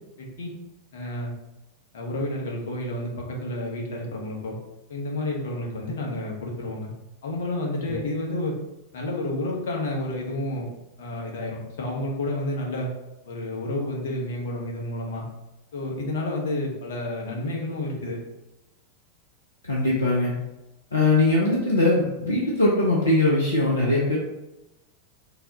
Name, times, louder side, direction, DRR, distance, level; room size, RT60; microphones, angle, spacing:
voice 1, 0.2-0.5 0.9-1.3 1.9-4.6 4.9-6.9 7.2-8.5 8.9-10.7 11.0-12.9 13.2-15.2 15.7-18.2, left 1 dB, 60° left, -2 dB, 1.0 m, -30 dB
voice 2, 19.6-20.3 20.9-24.2, left 2 dB, 75° left, -4 dB, 0.7 m, -21 dB
4.0 x 2.3 x 4.0 m, 0.97 s
figure-of-eight pair, 90°, 0 cm